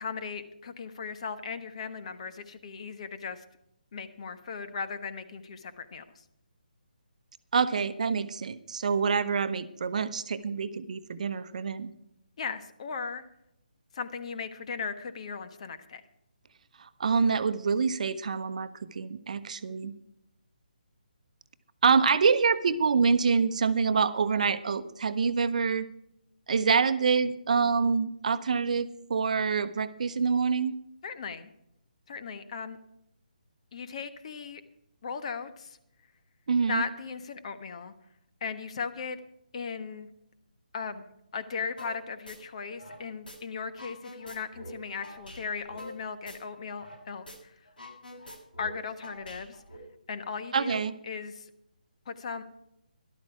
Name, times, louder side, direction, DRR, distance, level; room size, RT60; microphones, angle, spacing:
voice 1, 0.0-3.4 3.9-6.2 12.4-13.2 13.9-16.0 31.0-31.5 32.1-32.8 33.7-34.6 35.0-35.8 36.6-37.9 38.4-39.2 39.5-40.1 40.7-47.5 48.6-49.6 50.1-51.5 52.1-52.4, left 5 dB, 45° left, 10 dB, 1.3 m, -37 dB
voice 2, 7.5-11.9 16.8-19.9 21.8-25.9 26.5-30.7 36.5-36.8 50.5-50.9, right 5 dB, 50° right, 13 dB, 0.9 m, -26 dB
sound 1, 41.8-42.0 42.3-43.4 43.7-47.0 47.3-47.4 47.7-49.8, left 1 dB, 75° left, 6.4 m, -45 dB
13.0 x 12.0 x 4.8 m, 0.80 s
figure-of-eight pair, 150°, 5 cm